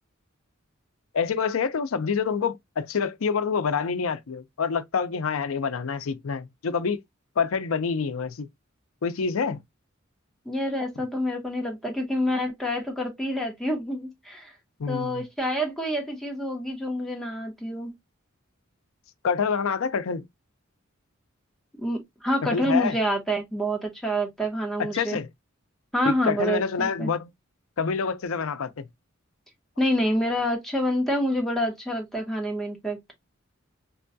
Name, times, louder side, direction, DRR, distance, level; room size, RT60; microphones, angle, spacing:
voice 1, 1.1-7.0 7.4-8.5 9.0-9.6 14.8-15.2 19.2-20.2 22.4-23.0 24.9-25.3 26.0-27.3 27.8-28.8, left 5 dB, 85° left, 0.5 m, -27 dB
voice 2, 10.5-14.5 14.9-17.9 21.8-25.2 25.9-27.1 29.8-33.0, equal, ahead, 0.9 m, -27 dB
5.2 x 2.3 x 2.6 m
head